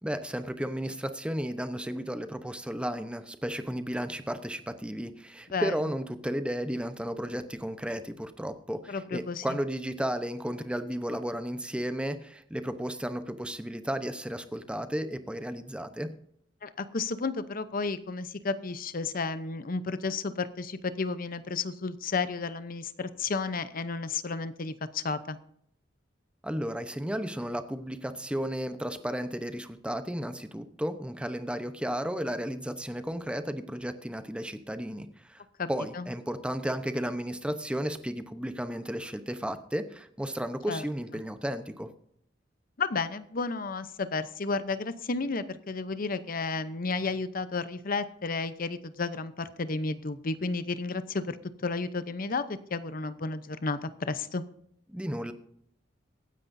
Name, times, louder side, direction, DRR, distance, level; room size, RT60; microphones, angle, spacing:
voice 1, 0.0-16.1 26.4-35.4 35.7-41.9 54.9-55.3, equal, 5° right, 9 dB, 0.9 m, -33 dB
voice 2, 8.9-9.6 16.6-25.4 35.6-35.7 35.9-36.1 40.7-40.8 42.8-54.4, left 4 dB, 50° left, 12 dB, 0.8 m, -32 dB
23.5 x 9.7 x 2.7 m, 0.70 s
head